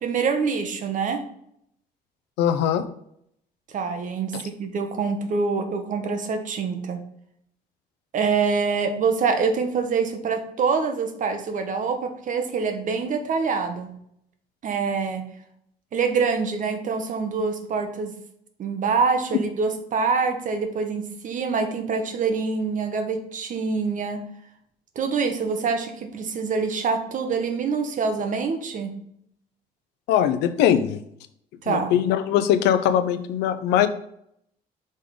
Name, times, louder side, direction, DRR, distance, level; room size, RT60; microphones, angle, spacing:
voice 1, 0.0-1.2 3.7-7.0 8.1-13.9 14.6-15.2 15.9-18.1 18.6-24.2 24.9-28.9 31.6-31.9, right 5 dB, 50° right, 7 dB, 1.1 m, -25 dB
voice 2, 2.4-2.8 4.3-4.4 30.1-31.0 31.7-33.9, left 10 dB, 90° left, 10 dB, 0.6 m, -21 dB
5.4 x 3.8 x 5.0 m, 0.72 s
cardioid pair, 110°, 17 cm